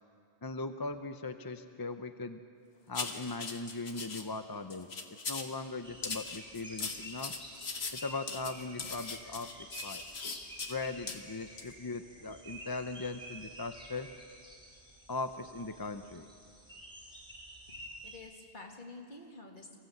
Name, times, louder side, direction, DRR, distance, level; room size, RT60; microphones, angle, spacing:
voice 1, 0.4-2.4 2.9-5.0 5.3-7.3 7.9-9.5 9.8-10.0 10.7-14.1 15.1-16.3, left 3 dB, 25° left, 9 dB, 0.5 m, -39 dB
sound 1, 2.9-4.2 4.7-5.5 6.0-10.7 11.1-11.2 11.6-11.7, left 4 dB, 70° left, 1.6 m, -40 dB
sound 2, 5.8-18.2, equal, 5° right, 4.0 m, -50 dB
voice 2, 17.7-19.8, left 2 dB, 45° left, 1 dB, 2.3 m, -50 dB
25.0 x 16.0 x 7.9 m, 2.4 s
omnidirectional pair, 1.1 m